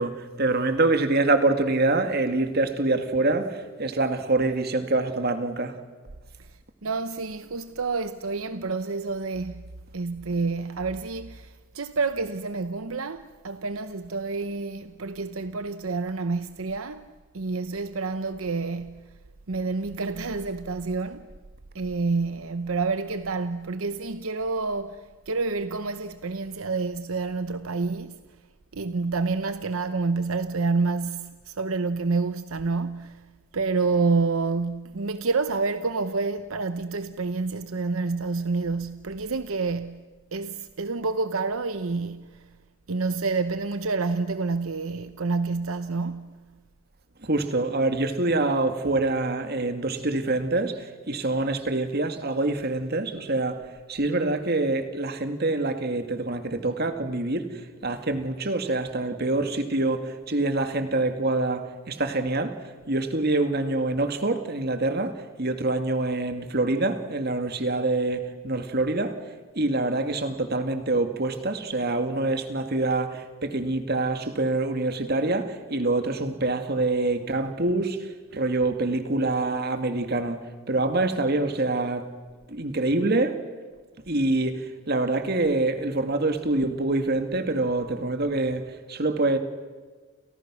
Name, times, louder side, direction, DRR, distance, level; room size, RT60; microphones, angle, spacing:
voice 1, 0.0-5.8 47.2-62.6 62.9-69.2 69.6-82.1 82.5-83.4 84.1-89.4, right 2 dB, 45° right, 2.2 m, -25 dB
voice 2, 6.8-9.6 9.9-17.1 17.3-19.1 19.5-21.3 21.7-28.2 28.7-33.3 33.5-42.5 42.9-46.5, right 4 dB, 75° right, 0.9 m, -28 dB
29.5 x 29.5 x 6.3 m
head